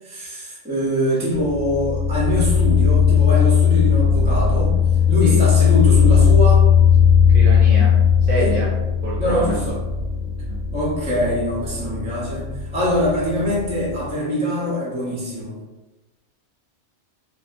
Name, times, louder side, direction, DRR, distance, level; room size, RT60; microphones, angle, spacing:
voice 1, 0.0-4.8 5.1-6.6 8.4-8.6 9.2-9.8 10.7-15.6, left 1 dB, 10° right, -6 dB, 0.4 m, -23 dB
sound 1, 1.4-14.1, left 7 dB, 75° left, 0.9 m, -17 dB
voice 2, 7.3-8.0 8.3-8.7 9.0-9.6 10.5-10.6, right 3 dB, 50° right, -6 dB, 0.8 m, -25 dB
2.6 x 2.3 x 2.5 m, 1.1 s
omnidirectional pair, 1.3 m